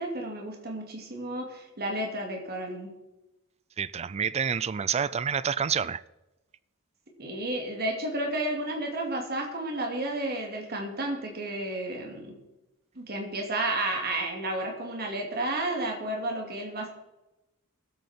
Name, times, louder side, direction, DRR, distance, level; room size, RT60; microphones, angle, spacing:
voice 1, 0.0-2.9 7.2-12.4 13.0-16.9, right 1 dB, 45° right, 2.4 m, -32 dB
voice 2, 3.8-6.0, right 7 dB, 30° right, 0.4 m, -28 dB
19.0 x 8.4 x 4.4 m
head